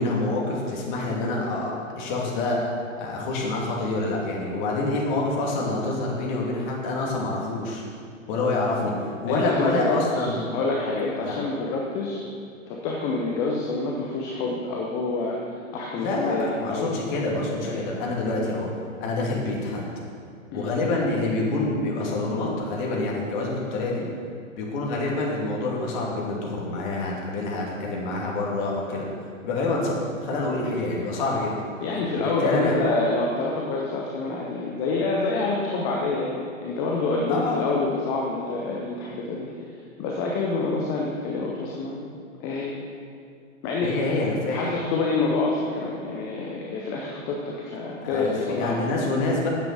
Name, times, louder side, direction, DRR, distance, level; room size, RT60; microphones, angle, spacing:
voice 1, 0.0-2.6 3.0-7.8 8.3-8.9 9.2-10.4 11.2-11.4 16.0-18.7 19.0-19.8 20.5-24.1 24.6-29.0 29.4-31.5 32.2-32.8 37.3-37.6 43.8-44.6 48.0-49.5, left 2 dB, 35° left, -2 dB, 2.7 m, -27 dB
voice 2, 9.3-12.2 12.7-15.4 15.7-16.9 17.6-17.9 20.5-20.7 31.8-39.5 40.0-42.0 42.4-42.7 43.6-44.0 44.5-48.9, left 3 dB, 10° left, -2 dB, 0.3 m, -27 dB
9.5 x 7.6 x 6.1 m, 2.3 s
figure-of-eight pair, 115°, 39 cm